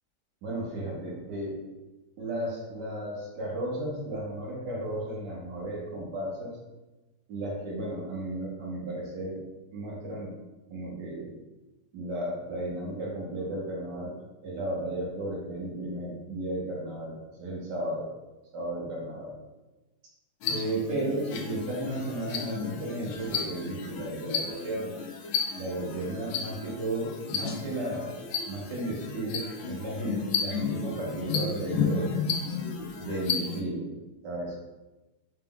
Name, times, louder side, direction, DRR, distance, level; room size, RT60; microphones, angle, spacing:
voice 1, 0.4-1.6 2.2-6.6 7.3-9.4 9.7-10.3 10.7-11.3 11.9-14.1 14.4-18.1 18.5-19.3 20.5-25.0 25.5-28.2 28.5-32.1 33.0-33.9 34.2-34.6, right 1 dB, 65° right, -4 dB, 1.6 m, -34 dB
sound 1, 20.4-33.6, left 5 dB, 90° left, 1.3 m, -33 dB
4.1 x 3.6 x 2.3 m, 1.1 s
omnidirectional pair, 2.1 m